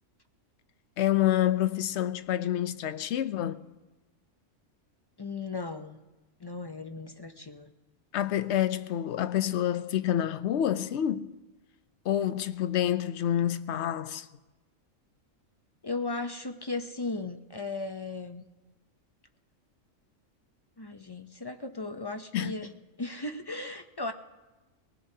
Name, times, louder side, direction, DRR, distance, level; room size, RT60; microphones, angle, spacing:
voice 1, 1.0-3.6 8.1-11.3 12.0-14.3 22.3-22.5, left 11 dB, 65° left, 0.8 m, -28 dB
voice 2, 5.2-6.0 6.4-7.7 15.8-18.4 20.8-24.1, left 3 dB, 40° left, 0.3 m, -36 dB
23.0 x 18.5 x 2.8 m
omnidirectional pair, 1.4 m